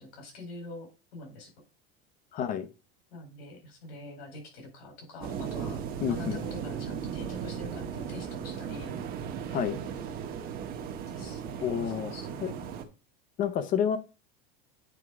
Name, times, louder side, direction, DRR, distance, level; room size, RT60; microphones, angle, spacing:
voice 1, 0.0-1.5 3.1-5.8 6.1-9.0 11.1-12.5, left 2 dB, 80° left, 4.1 m, -45 dB
voice 2, 2.3-2.7 6.0-6.4 9.5-9.8 11.6-12.1 12.4-12.5 13.4-14.0, left 8 dB, 30° left, 0.6 m, -29 dB
sound 1, 5.2-12.8, right 8 dB, 30° right, 1.0 m, -37 dB
9.2 x 3.6 x 4.8 m
supercardioid pair, 170°, 30 cm